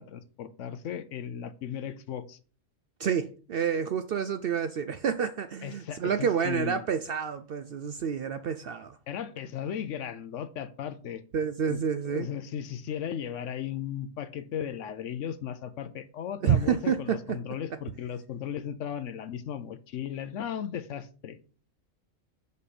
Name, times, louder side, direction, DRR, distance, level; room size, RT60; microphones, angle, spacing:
voice 1, 0.0-2.4 5.6-6.8 9.1-11.2 11.7-21.4, left 9 dB, 70° left, 1.0 m, -36 dB
voice 2, 3.0-9.0 11.3-12.3 16.4-17.2, right 7 dB, 65° right, 0.6 m, -28 dB
6.5 x 5.2 x 4.2 m
omnidirectional pair, 1.4 m